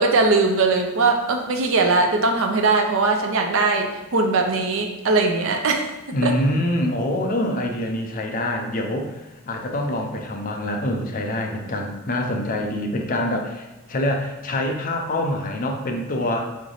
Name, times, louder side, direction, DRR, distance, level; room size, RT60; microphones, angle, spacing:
voice 1, 0.0-5.9 6.2-6.3, right 3 dB, 60° right, 3 dB, 0.5 m, -20 dB
voice 2, 6.1-16.4, left 1 dB, 35° left, 2 dB, 0.5 m, -25 dB
3.8 x 3.2 x 3.9 m, 1.0 s
head